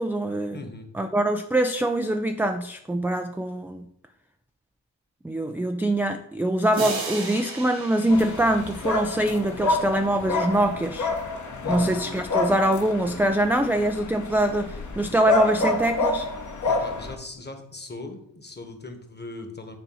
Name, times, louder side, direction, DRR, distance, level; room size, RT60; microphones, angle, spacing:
voice 1, 0.0-0.6 0.9-3.9 5.2-11.1 11.7-16.3, right 1 dB, 5° right, 6 dB, 0.4 m, -24 dB
voice 2, 0.5-0.9 11.6-11.9 16.7-19.8, left 2 dB, 20° left, 5 dB, 1.3 m, -39 dB
sound 1, 6.7-9.4, right 3 dB, 80° right, 1.6 m, -35 dB
sound 2, 8.1-17.2, left 3 dB, 40° left, 1.1 m, -28 dB
7.4 x 2.7 x 5.6 m, 0.75 s
supercardioid pair, 45°, 46 cm